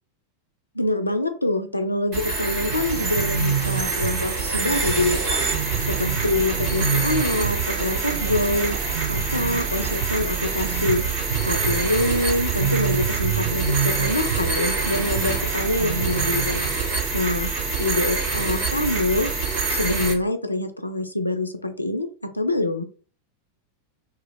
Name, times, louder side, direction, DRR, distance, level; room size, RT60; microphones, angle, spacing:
voice 1, 0.7-11.0 11.4-16.6 17.1-17.5 17.8-19.3 19.7-22.8, left 2 dB, 85° left, 8 dB, 0.4 m, -25 dB
sound 1, 2.1-20.1, right 4 dB, 45° right, 1.4 m, -26 dB
sound 2, 2.7-16.7, right 7 dB, 65° right, 0.3 m, -29 dB
2.4 x 2.3 x 3.0 m, 0.39 s
figure-of-eight pair, 90°, 0 cm